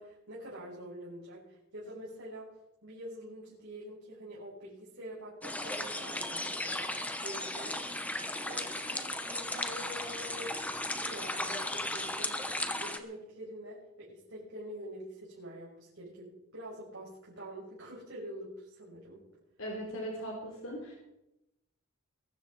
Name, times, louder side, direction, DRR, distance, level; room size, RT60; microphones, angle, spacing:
voice 1, 0.0-2.5 2.8-7.9 8.4-19.3, equal, 65° right, -7 dB, 6.1 m, -46 dB
sound 1, 5.4-13.0, left 1 dB, 5° left, 1.0 m, -36 dB
voice 2, 19.6-20.9, equal, 60° left, -1 dB, 3.6 m, -39 dB
22.0 x 12.5 x 4.2 m, 0.89 s
head